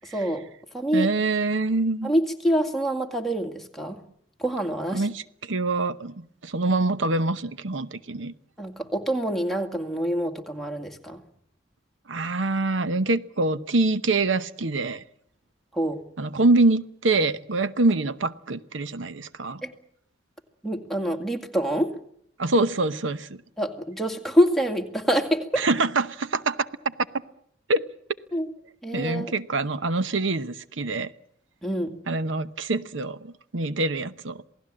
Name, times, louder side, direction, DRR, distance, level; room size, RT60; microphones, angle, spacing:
voice 1, 0.0-0.4 0.7-1.1 2.0-4.0 4.4-5.1 8.6-11.2 15.7-16.0 19.6-19.7 20.6-22.0 23.6-25.6 28.3-28.5 28.8-29.3 31.6-32.0, equal, ahead, 2.2 m, -26 dB
voice 2, 0.9-2.1 4.9-8.3 12.1-15.0 16.2-19.6 22.4-23.4 25.6-26.9 27.7-27.9 28.9-31.1 32.1-34.4, right 2 dB, 75° right, 0.9 m, -25 dB
27.5 x 18.5 x 7.6 m
head